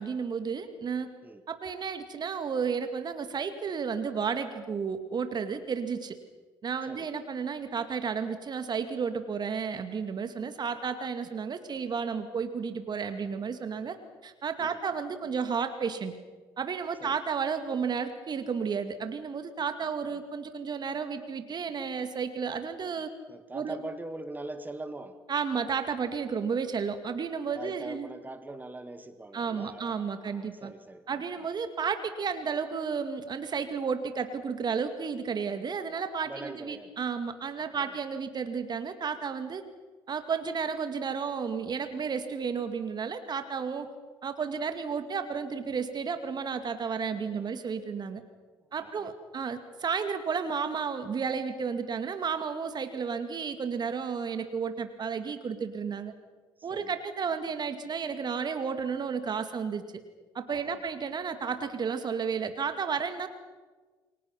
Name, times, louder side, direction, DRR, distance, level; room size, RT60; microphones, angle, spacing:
voice 1, 0.0-1.1 1.5-6.2 6.6-14.0 14.2-16.1 16.6-23.1 23.5-23.8 25.3-28.1 29.3-30.7 31.1-39.6 40.1-43.9 44.2-48.2 48.7-56.1 56.6-59.8 60.3-63.3, right 6 dB, 40° right, 9 dB, 2.3 m, -32 dB
voice 2, 23.3-25.1 27.6-31.0 36.3-36.9 37.6-37.9 47.2-47.6 48.8-49.1 56.7-56.9 60.5-60.8, right 2 dB, 15° right, 9 dB, 2.2 m, -42 dB
29.0 x 23.0 x 5.9 m, 1.3 s
figure-of-eight pair, 55°, 11 cm